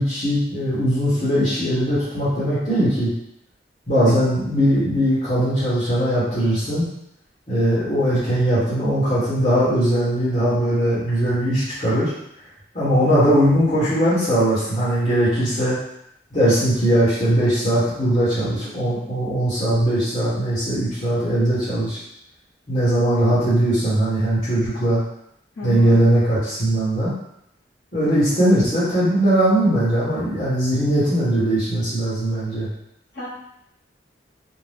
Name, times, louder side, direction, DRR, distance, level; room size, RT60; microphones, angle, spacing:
voice 1, 0.0-3.1 3.9-6.9 7.5-12.1 12.7-15.8 16.3-22.0 22.7-25.0 25.6-27.1 27.9-32.7, right 1 dB, 45° left, -11 dB, 1.1 m, -20 dB
voice 2, 25.6-25.9 33.1-33.3, left 1 dB, 70° left, -9 dB, 1.1 m, -32 dB
2.6 x 2.1 x 3.4 m, 0.75 s
head